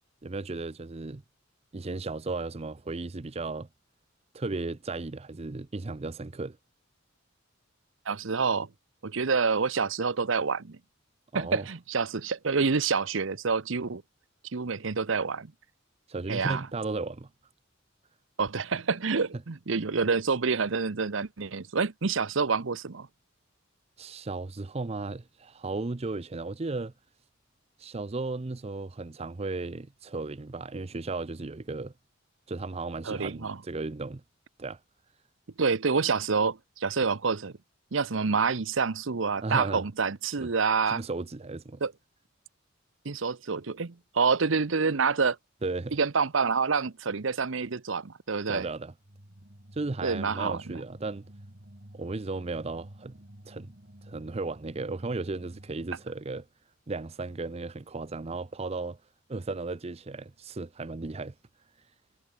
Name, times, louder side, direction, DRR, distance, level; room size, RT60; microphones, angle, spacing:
voice 1, 0.2-1.2 1.7-3.7 4.3-6.6 11.3-11.7 16.1-17.3 24.0-26.9 27.8-31.9 32.5-34.2 34.6-34.8 39.4-39.8 40.4-40.5 40.9-41.8 45.6-46.0 48.5-48.9 49.7-51.3 51.9-53.2 53.5-53.7 54.0-56.5 56.9-59.0 59.3-61.3, right 3 dB, 30° right, 0.6 m, -35 dB
voice 2, 8.1-8.7 9.0-10.8 11.3-14.0 14.5-15.5 16.3-16.7 18.4-23.1 33.1-33.6 35.6-37.5 37.9-41.0 41.8-41.9 43.0-45.4 45.9-48.7 50.0-50.8, right 5 dB, 70° right, 0.8 m, -27 dB
sound 1, 49.0-56.4, right 1 dB, 45° right, 3.0 m, -51 dB
head